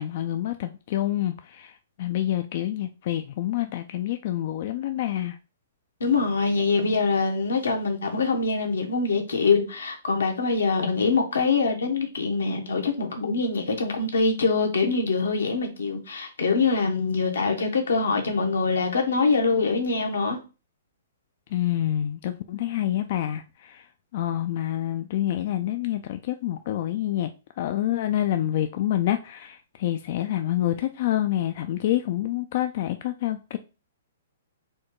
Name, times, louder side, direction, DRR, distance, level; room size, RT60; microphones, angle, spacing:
voice 1, 0.0-5.4 21.5-23.9 24.1-27.3 27.6-33.6, left 12 dB, 50° left, 0.3 m, -27 dB
voice 2, 6.0-20.4, left 4 dB, 85° left, 1.2 m, -24 dB
4.3 x 2.3 x 4.7 m
hypercardioid pair, 135°, 0 cm